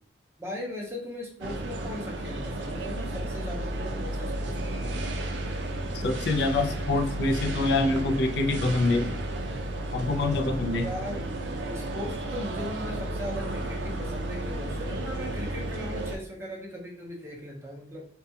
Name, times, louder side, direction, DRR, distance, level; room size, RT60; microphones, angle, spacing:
voice 1, 0.4-5.0 10.8-11.3 11.7-18.1, left 1 dB, 15° right, -2 dB, 0.6 m, -38 dB
sound 1, 1.4-16.2, right 1 dB, 80° right, 0.4 m, -33 dB
voice 2, 6.0-9.1 9.9-10.9, left 2 dB, 70° left, 4 dB, 0.4 m, -25 dB
2.4 x 2.2 x 2.6 m, 0.63 s
head